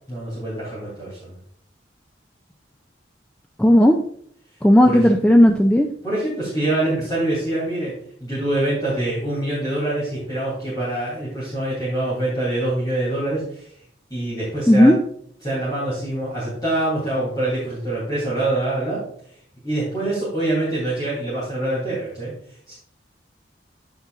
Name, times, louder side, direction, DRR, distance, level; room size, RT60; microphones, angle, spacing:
voice 1, 0.1-1.3 4.8-5.1 6.0-7.9 8.2-13.7 14.1-15.0 15.4-19.0 19.6-22.3 22.7-22.8, right 1 dB, 20° left, -9 dB, 2.9 m, -25 dB
voice 2, 3.6-4.0 4.6-5.9 14.7-15.0, equal, 5° left, 3 dB, 0.3 m, -13 dB
9.5 x 6.6 x 2.5 m, 0.64 s
head